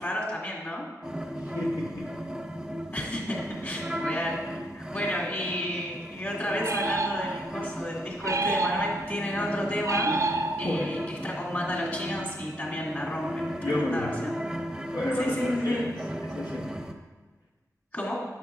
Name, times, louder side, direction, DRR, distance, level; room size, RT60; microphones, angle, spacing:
voice 1, 0.0-0.8 2.9-4.4 4.7-10.1 10.6-14.3 15.1-15.8 17.9-18.2, left 1 dB, 35° left, -5 dB, 2.4 m, -32 dB
sound 1, 1.0-16.9, equal, 10° right, 0.6 m, -36 dB
voice 2, 1.5-2.1 10.6-10.9 13.6-14.3 14.9-15.4 15.6-15.9 16.2-16.7, left 1 dB, 80° left, -2 dB, 0.9 m, -30 dB
sound 2, 6.6-7.6 8.2-9.3 9.8-11.0, right 3 dB, 55° right, 0.4 m, -29 dB
9.0 x 7.2 x 2.4 m, 1.3 s
wide cardioid pair, 60°, 7 cm